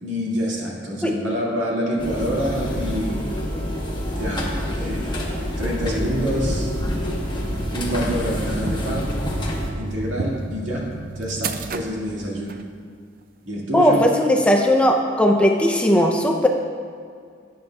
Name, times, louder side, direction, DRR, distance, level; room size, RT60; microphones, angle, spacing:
voice 1, 0.0-3.4 4.2-4.5 4.7-5.3 5.6-6.7 7.7-9.3 9.8-10.9 11.2-12.6 13.5-14.0, equal, 85° right, -4 dB, 2.1 m, -27 dB
sound 1, 2.0-9.7, equal, 25° left, 1.0 m, -27 dB
sound 2, 6.5-12.6, right 3 dB, 50° right, 0.4 m, -32 dB
voice 2, 13.7-16.5, equal, 5° left, 2 dB, 0.5 m, -17 dB
12.0 x 8.9 x 2.3 m, 2.2 s
head